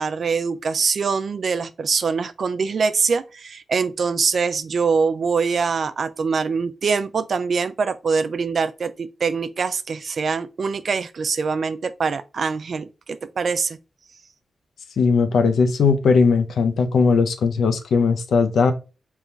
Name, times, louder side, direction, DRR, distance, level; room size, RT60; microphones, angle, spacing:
voice 1, 0.0-13.8, right 5 dB, 60° right, 0.4 m, -23 dB
voice 2, 15.0-18.7, left 5 dB, 85° left, 0.6 m, -18 dB
3.7 x 3.0 x 3.9 m
cardioid pair, 95°, 0 cm